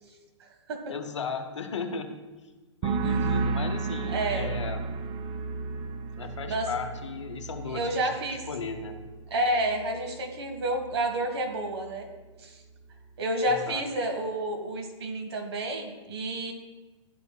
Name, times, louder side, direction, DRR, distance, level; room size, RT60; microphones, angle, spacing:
voice 1, 0.9-2.1 2.8-4.8 6.2-9.1 13.4-13.9, left 5 dB, 70° left, 6 dB, 0.9 m, -36 dB
sound 1, 2.8-10.3 10.6-11.1, right 4 dB, 25° right, 0.4 m, -33 dB
voice 2, 4.1-4.6 6.4-6.7 7.7-8.4 9.3-12.1 12.4-12.6 13.2-16.5, right 1 dB, 60° right, 3 dB, 1.5 m, -30 dB
11.5 x 5.2 x 2.2 m, 1.2 s
figure-of-eight pair, 120°, 16 cm